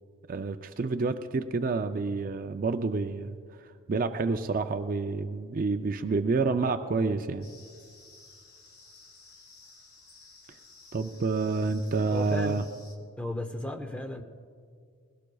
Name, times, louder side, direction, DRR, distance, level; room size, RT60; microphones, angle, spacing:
voice 1, 0.3-7.5 10.9-12.6, right 4 dB, 40° right, 8 dB, 0.4 m, -29 dB
sound 1, 7.4-13.0, left 3 dB, 45° left, 1.8 m, -54 dB
voice 2, 12.1-12.7 13.2-14.2, left 1 dB, 5° left, 6 dB, 0.6 m, -34 dB
20.5 x 16.5 x 2.3 m, 2.1 s
head